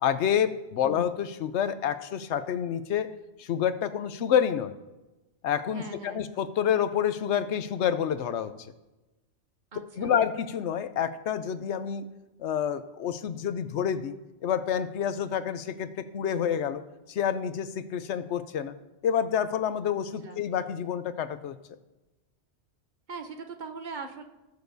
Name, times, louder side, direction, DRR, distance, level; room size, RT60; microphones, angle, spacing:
voice 1, 0.0-3.1 3.4-4.7 5.4-8.5 10.0-12.1 12.4-14.2 14.4-16.8 17.1-18.7 19.0-21.5, left 8 dB, 80° left, 12 dB, 0.9 m, -28 dB
voice 2, 5.7-6.2 9.7-10.2 20.2-20.4 23.1-24.2, right 4 dB, 50° right, 6 dB, 0.7 m, -40 dB
18.5 x 6.7 x 2.7 m, 1.1 s
omnidirectional pair, 1.2 m